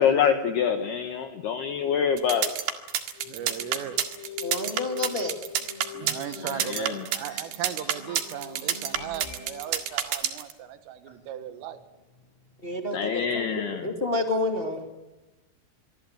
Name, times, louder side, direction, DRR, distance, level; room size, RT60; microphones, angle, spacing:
voice 1, 0.0-2.5 6.7-6.9 12.9-13.9, left 7 dB, 65° left, 8 dB, 2.9 m, -25 dB
sound 1, 2.2-10.5, right 10 dB, 65° right, 3.6 m, -28 dB
sound 2, 3.2-10.3, left 7 dB, 90° left, 6.6 m, -43 dB
voice 2, 3.3-4.0 5.9-11.8, right 10 dB, 85° right, 11 dB, 4.2 m, -37 dB
voice 3, 4.4-5.3 12.6-14.9, left 2 dB, 35° left, 4 dB, 0.9 m, -29 dB
26.5 x 23.5 x 8.0 m, 1.0 s
omnidirectional pair, 5.7 m